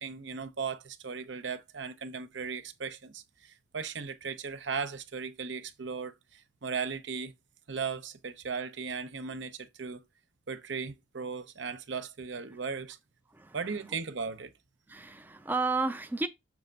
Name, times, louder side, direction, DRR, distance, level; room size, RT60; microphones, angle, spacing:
voice 1, 0.0-7.3 7.7-10.0 10.5-13.0 13.5-14.5, right 5 dB, 70° right, 0.7 m, -37 dB
voice 2, 14.9-16.3, right 3 dB, 10° right, 0.4 m, -32 dB
7.0 x 3.3 x 5.2 m
head